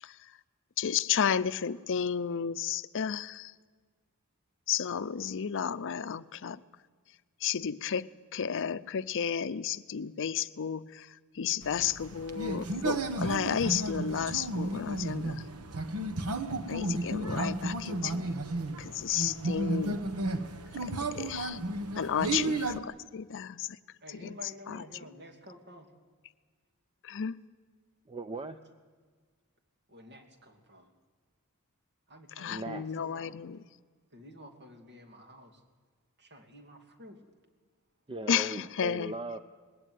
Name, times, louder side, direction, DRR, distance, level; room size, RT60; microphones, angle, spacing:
voice 1, 0.8-3.5 4.7-6.6 7.4-8.1 8.3-11.0 11.4-15.4 16.7-18.3 18.8-20.0 21.1-21.6 22.0-23.7 24.1-24.3 24.7-24.8 27.0-27.4 32.4-33.6 38.3-39.1, left 8 dB, 60° left, 13 dB, 0.5 m, -32 dB
sound 1, 11.6-22.8, right 2 dB, 80° right, 1.1 m, -33 dB
voice 2, 24.0-25.9 28.4-28.6 29.9-30.9 32.1-33.3 34.1-35.6 36.2-37.2, equal, 50° right, 3 dB, 2.5 m, -51 dB
voice 3, 28.1-28.6 32.5-32.9 38.1-39.4, right 2 dB, 25° right, 9 dB, 0.6 m, -38 dB
20.0 x 16.5 x 9.4 m, 1.5 s
head